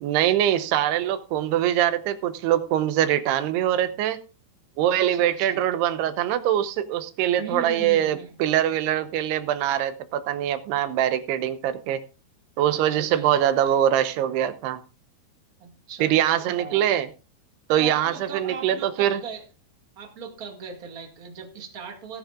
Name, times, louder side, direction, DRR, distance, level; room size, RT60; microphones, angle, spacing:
voice 1, 0.0-4.2 4.8-12.0 12.6-14.8 16.0-17.1 17.7-19.2, right 11 dB, 75° right, 11 dB, 2.9 m, -23 dB
voice 2, 5.1-5.6 7.3-8.4 12.7-13.5 15.6-16.9 17.8-19.4 19.9-22.2, right 5 dB, 35° right, 3 dB, 1.5 m, -38 dB
17.5 x 10.5 x 2.5 m, 0.32 s
omnidirectional pair, 4.9 m